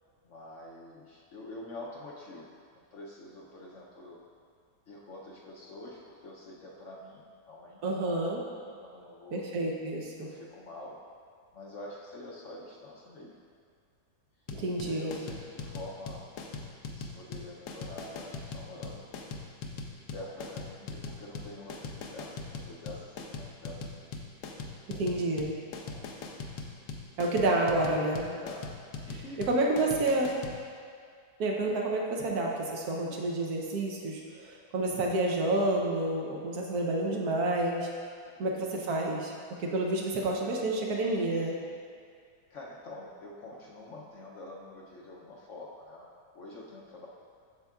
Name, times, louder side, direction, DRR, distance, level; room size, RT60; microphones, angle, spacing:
voice 1, 0.2-4.2 4.9-9.4 10.2-11.0 11.5-13.4 14.8-16.2 16.9-19.1 20.1-24.1 24.7-24.9 25.8-26.3 28.1-28.7 29.1-29.4 29.9-30.0 38.2-38.5 42.5-46.1 46.3-47.1, left 1 dB, 60° left, -3 dB, 0.8 m, -46 dB
voice 2, 7.8-8.4 9.3-10.3 14.5-15.2 24.9-25.6 27.2-28.3 29.1-30.4 31.4-37.9 38.4-39.3 39.6-41.6, right 2 dB, 70° right, -1 dB, 1.3 m, -29 dB
sound 1, 14.5-30.6, left 4 dB, 85° left, 1.2 m, -40 dB
8.0 x 6.4 x 2.3 m, 2.2 s
omnidirectional pair, 1.8 m